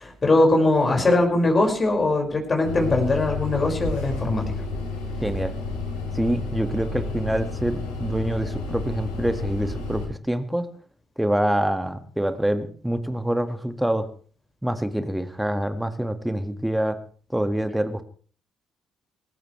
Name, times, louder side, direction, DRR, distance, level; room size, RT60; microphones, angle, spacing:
voice 1, 0.0-4.4, left 2 dB, 35° left, 1 dB, 5.8 m, -21 dB
sound 1, 2.6-10.1, left 3 dB, 75° left, 6.0 m, -31 dB
voice 2, 5.2-5.5 6.1-10.7 11.2-14.1 14.6-17.0 17.3-18.0, right 1 dB, 5° right, 8 dB, 2.0 m, -26 dB
25.5 x 15.0 x 3.4 m, 0.44 s
figure-of-eight pair, 45°, 0 cm